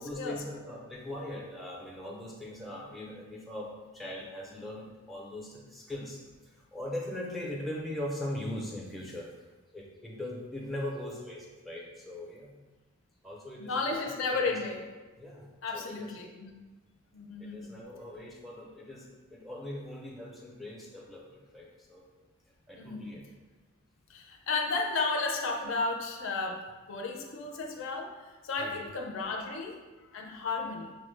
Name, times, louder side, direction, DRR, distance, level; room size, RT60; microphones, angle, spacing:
voice 1, 0.0-9.3 9.7-12.6 13.2-14.6 15.2-15.5 15.7-16.1 17.4-22.0 22.7-23.3 28.6-28.9, left 1 dB, ahead, -3 dB, 0.5 m, -40 dB
voice 2, 13.6-14.9 15.6-16.5 17.1-17.7 22.7-23.1 24.1-30.9, left 3 dB, 65° left, 2 dB, 0.4 m, -33 dB
5.3 x 2.0 x 3.1 m, 1.2 s
head